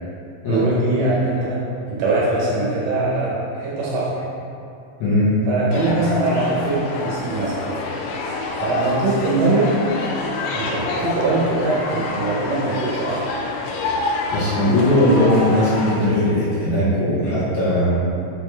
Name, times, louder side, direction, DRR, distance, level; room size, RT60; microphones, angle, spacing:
voice 1, 0.5-1.6 1.9-4.1 5.5-7.7 8.6-9.8 10.5-13.2, right 2 dB, 75° right, -6 dB, 2.8 m, -22 dB
voice 2, 5.0-5.3 14.3-18.0, left 1 dB, 70° left, -10 dB, 3.3 m, -18 dB
sound 1, 5.7-16.0, left 3 dB, 85° left, 3.2 m, -27 dB
7.7 x 4.1 x 3.3 m, 2.5 s
omnidirectional pair, 5.5 m